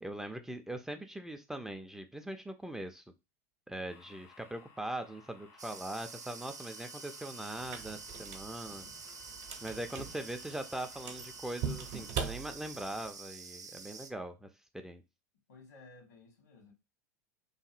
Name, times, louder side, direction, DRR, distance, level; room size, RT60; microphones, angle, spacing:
voice 1, 0.0-3.0 3.7-8.9 9.6-15.0, right 1 dB, 5° right, 0.3 m, -41 dB
sound 1, 3.9-12.1, left 5 dB, 60° left, 0.7 m, -58 dB
sound 2, 5.6-14.1, right 5 dB, 90° right, 0.4 m, -48 dB
sound 3, 7.6-13.1, right 7 dB, 50° right, 0.6 m, -42 dB
voice 2, 15.5-16.7, left 3 dB, 80° left, 1.1 m, -56 dB
2.8 x 2.6 x 2.4 m
hypercardioid pair, 90°, 9 cm